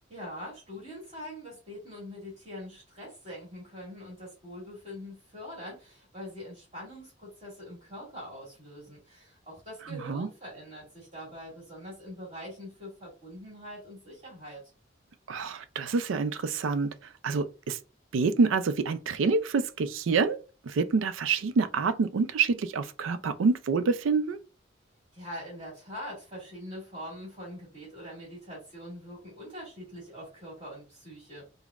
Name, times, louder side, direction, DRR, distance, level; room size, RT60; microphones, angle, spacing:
voice 1, 0.1-14.6 25.1-31.5, equal, 35° right, 1.9 m, -43 dB
voice 2, 9.9-10.3 15.3-16.9 17.2-17.8 18.1-20.4 20.6-24.4, right 4 dB, 90° right, 0.4 m, -27 dB
5.1 x 2.1 x 2.4 m
head